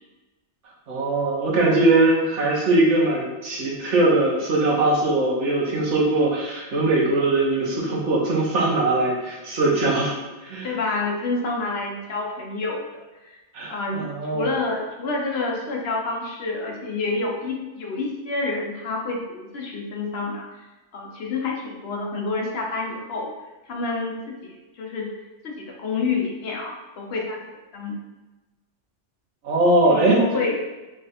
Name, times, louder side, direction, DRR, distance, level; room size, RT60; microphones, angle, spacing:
voice 1, 0.9-10.1 10.4-10.7 13.5-14.5 29.4-30.2, right 2 dB, 75° right, -3 dB, 1.2 m, -21 dB
voice 2, 10.6-13.4 13.7-20.6 20.9-23.3 23.7-25.1 25.4-27.4 27.7-28.0 29.9-30.6, left 3 dB, 60° left, -1 dB, 0.9 m, -28 dB
3.3 x 2.4 x 4.0 m, 1.1 s
omnidirectional pair, 1.2 m